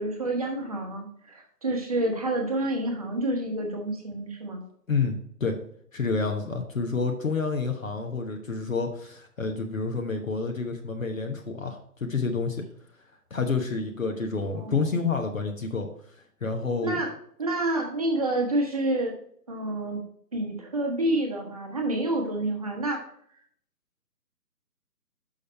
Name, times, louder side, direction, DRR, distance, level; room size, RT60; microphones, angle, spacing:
voice 1, 0.0-4.6 14.4-14.8 16.8-17.1 17.4-19.1 19.5-20.0 20.3-23.0, right 1 dB, 25° right, 1 dB, 1.0 m, -28 dB
voice 2, 4.9-5.6 5.9-12.6 13.3-15.9 16.4-17.0, left 4 dB, 55° left, 4 dB, 1.1 m, -29 dB
6.4 x 5.7 x 4.4 m, 0.64 s
figure-of-eight pair, 145°, 48 cm